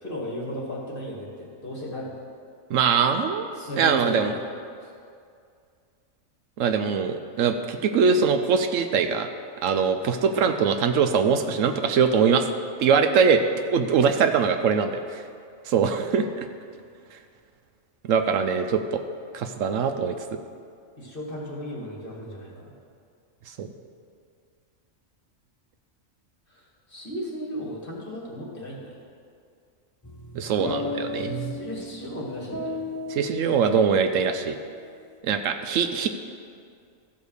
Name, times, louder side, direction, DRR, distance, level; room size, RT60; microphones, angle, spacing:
voice 1, 0.0-2.2 3.6-4.4 4.8-4.9 11.3-11.6 21.0-22.7 26.9-29.1 30.6-32.8, equal, 40° left, -3 dB, 2.2 m, -35 dB
voice 2, 2.7-3.5 3.8-4.3 6.6-9.3 9.6-12.5 12.8-13.4 13.7-15.2 15.7-16.5 18.0-19.0 19.3-20.1 23.6-23.7 30.3-31.5 33.1-34.6 35.2-36.1, right 6 dB, 75° right, 8 dB, 1.0 m, -22 dB
sound 1, 30.0-34.4, left 2 dB, 20° left, 0.6 m, -35 dB
14.0 x 5.1 x 6.4 m, 2.3 s
omnidirectional pair, 1.4 m